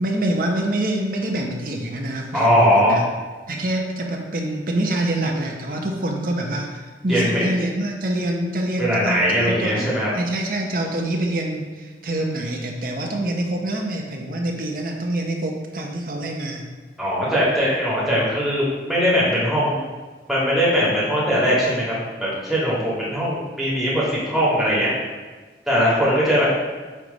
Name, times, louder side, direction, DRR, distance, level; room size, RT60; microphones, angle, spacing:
voice 1, 0.0-3.0 3.5-16.7, right 1 dB, 50° right, 1 dB, 0.9 m, -26 dB
voice 2, 2.3-3.0 7.1-7.5 8.8-10.1 17.0-19.8 20.3-24.9 25.7-26.4, equal, ahead, -8 dB, 1.9 m, -20 dB
8.7 x 3.4 x 4.0 m, 1.3 s
head